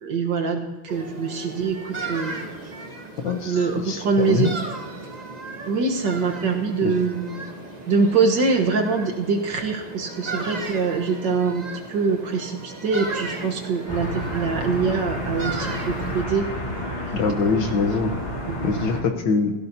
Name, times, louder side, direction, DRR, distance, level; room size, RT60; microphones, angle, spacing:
voice 1, 0.0-2.5 3.4-4.5 5.7-7.4 7.9-16.4 16.8-17.2 18.5-19.1, right 4 dB, 65° right, 3 dB, 1.8 m, -24 dB
sound 1, 0.9-16.2, right 2 dB, 30° right, 0.9 m, -36 dB
voice 2, 3.2-3.6 3.9-4.5 6.8-6.9 17.1-18.1 18.6-19.5, left 4 dB, 70° left, 4 dB, 1.7 m, -23 dB
sound 2, 13.9-19.0, equal, 20° left, 2.2 m, -30 dB
17.0 x 15.5 x 2.8 m, 1.2 s
omnidirectional pair, 2.2 m